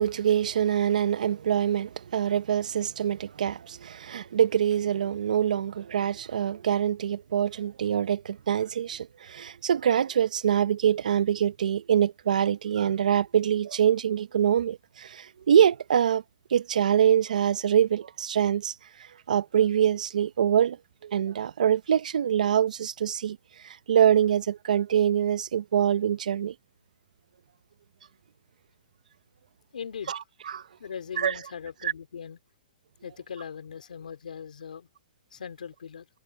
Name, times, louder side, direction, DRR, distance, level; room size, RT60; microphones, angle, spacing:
voice 1, 0.0-16.2 16.5-18.7 19.3-20.8 21.0-23.4 23.6-26.5 30.1-30.2 30.5-30.6 31.2-31.3 31.8-31.9, right 9 dB, 70° right, 0.7 m, -24 dB
voice 2, 29.7-30.2 30.8-32.4 33.0-34.9 35.3-36.1, left 7 dB, 90° left, 3.8 m, -39 dB
hypercardioid pair, 170°, 4 cm